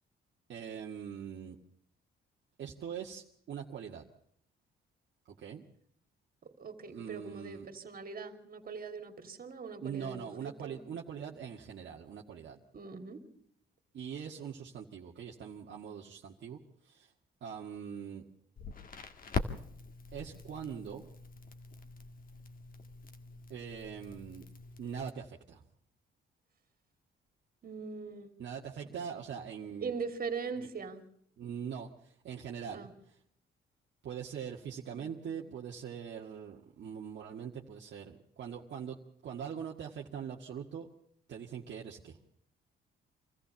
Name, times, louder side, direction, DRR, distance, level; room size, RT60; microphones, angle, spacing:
voice 1, 0.5-1.6 2.6-4.0 5.3-5.6 6.9-7.7 9.8-12.6 13.9-17.1 17.4-18.3 20.1-21.1 23.5-24.5 24.8-25.6 28.4-29.9 31.4-32.9 34.0-39.0 39.2-40.9 41.3-42.2, right 7 dB, 65° right, -1 dB, 1.9 m, -42 dB
voice 2, 6.4-10.8 12.7-13.2 27.6-28.3 29.8-31.1 32.7-32.9 34.8-35.4, right 5 dB, 45° right, 6 dB, 3.1 m, -41 dB
Crackle, 18.6-25.1, left 4 dB, 45° left, 2.0 m, -42 dB
25.5 x 14.5 x 7.0 m, 0.68 s
cardioid pair, 90°, 20 cm